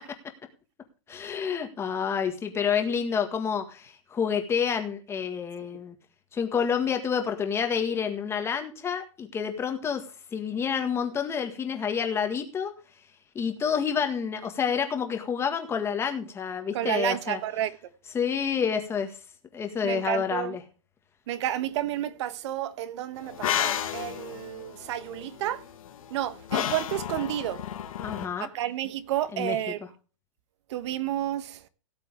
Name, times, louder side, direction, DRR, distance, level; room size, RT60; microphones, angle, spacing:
voice 1, 1.1-6.0 6.3-10.0 10.3-12.7 13.4-17.4 18.1-19.2 19.5-20.6 28.0-28.5 29.3-29.7, left 7 dB, 15° left, 1.7 m, -28 dB
voice 2, 16.7-17.7 19.8-20.6 21.3-25.6 26.1-27.6 28.4-29.8 30.7-31.6, right 13 dB, 55° right, 1.2 m, -31 dB
sound 1, 23.2-28.3, left 10 dB, 85° left, 1.8 m, -32 dB
17.5 x 7.5 x 3.6 m
supercardioid pair, 155°, 17 cm